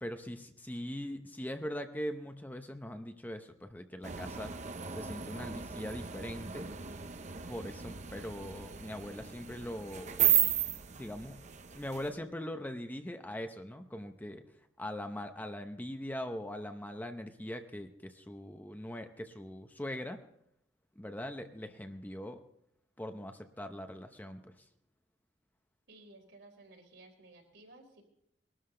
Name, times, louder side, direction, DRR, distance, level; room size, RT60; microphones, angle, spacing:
voice 1, 0.0-4.5 4.9-6.7 7.5-10.2 10.9-11.4 11.8-14.4 14.8-20.2 21.0-22.4 23.0-24.5, left 1 dB, 10° left, 7 dB, 0.8 m, -41 dB
sound 1, 4.0-12.1, right 10 dB, 40° right, 0.9 m, -34 dB
voice 2, 25.9-28.0, right 2 dB, 75° right, 0 dB, 4.4 m, -56 dB
21.0 x 12.5 x 3.8 m, 0.77 s
head